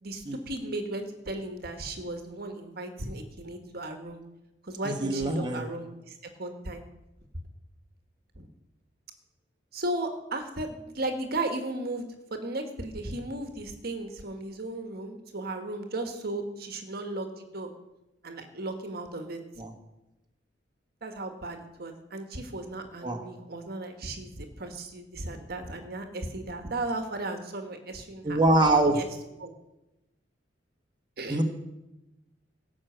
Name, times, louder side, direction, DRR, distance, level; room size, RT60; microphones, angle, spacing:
voice 1, 0.0-4.2 4.6-6.8 8.4-8.5 9.7-17.7 18.2-19.4 21.0-28.4 28.9-29.1 29.4-29.5 31.2-31.4, right 2 dB, 55° right, 6 dB, 1.5 m, -35 dB
voice 2, 4.8-5.6 19.6-19.7 23.0-23.3 28.2-29.0 31.3-31.4, right 2 dB, 25° right, 3 dB, 1.5 m, -24 dB
17.0 x 6.3 x 8.0 m, 0.96 s
head